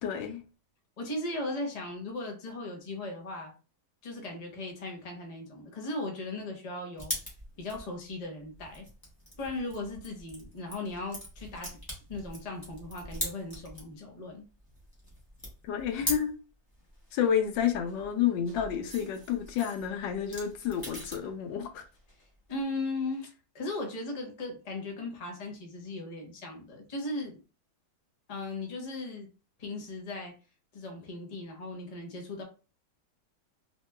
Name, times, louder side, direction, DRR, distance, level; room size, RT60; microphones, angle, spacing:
voice 1, 0.0-0.4 15.6-16.3 17.1-21.8, left 8 dB, 85° left, 1.3 m, -30 dB
voice 2, 1.0-3.5 4.0-7.1 7.6-8.9 9.4-11.8 12.1-14.4 22.5-27.4 28.3-29.3 29.6-30.3 30.7-32.4, left 2 dB, 45° left, 0.5 m, -37 dB
sound 1, 7.0-14.0 14.3-16.3 16.7-21.3 21.6-22.6, equal, 15° left, 0.8 m, -42 dB
3.0 x 2.9 x 2.2 m
omnidirectional pair, 1.9 m